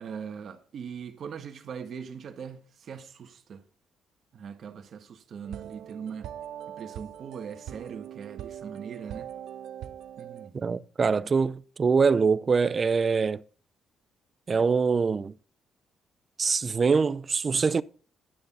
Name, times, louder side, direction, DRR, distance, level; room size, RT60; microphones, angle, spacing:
voice 1, 0.0-3.6 4.3-6.3 6.8-9.3 10.2-10.8, right 7 dB, 60° right, 1.5 m, -41 dB
sound 1, 5.4-10.5, right 10 dB, 80° right, 0.7 m, -42 dB
voice 2, 10.6-13.4 14.5-15.3 16.4-17.8, right 5 dB, 35° right, 0.5 m, -24 dB
12.0 x 7.0 x 5.5 m
cardioid pair, 100°, 0 cm